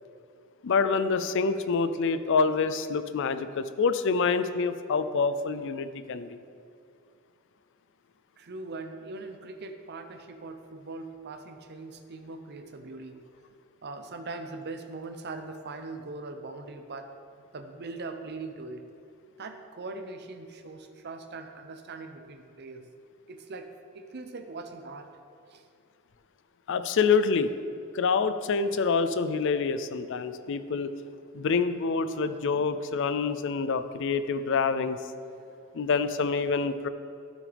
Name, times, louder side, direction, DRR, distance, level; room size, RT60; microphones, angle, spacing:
voice 1, 0.6-6.4 26.7-27.5 27.9-30.9 31.3-35.0 35.7-36.9, left 5 dB, 60° left, 12 dB, 0.4 m, -26 dB
voice 2, 8.4-13.2 13.8-17.1 17.5-18.9 19.4-22.8 23.3-25.1 25.5-25.6, right 3 dB, 50° right, 7 dB, 0.6 m, -41 dB
12.0 x 6.2 x 3.4 m, 2.5 s
head